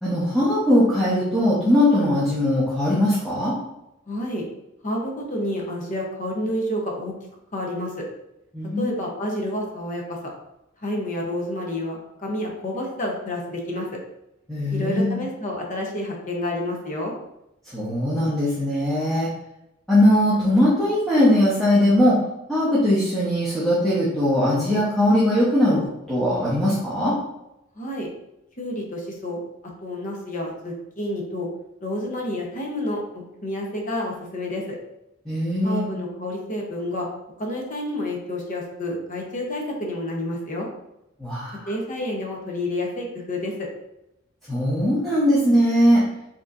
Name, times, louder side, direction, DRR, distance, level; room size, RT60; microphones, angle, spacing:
voice 1, 0.0-3.6 8.5-8.9 14.5-15.2 17.7-19.3 19.9-22.2 22.5-27.2 35.2-35.9 41.2-41.7 44.5-46.0, left 1 dB, ahead, -10 dB, 0.9 m, -20 dB
voice 2, 4.1-4.5 4.8-7.1 7.5-8.0 8.8-10.2 10.8-13.9 14.7-17.1 27.8-28.1 28.6-29.4 29.8-31.5 31.8-34.8 35.6-37.1 37.4-40.7 41.7-43.7, left 1 dB, 40° left, 0 dB, 0.8 m, -29 dB
4.8 x 2.9 x 2.5 m, 0.87 s
head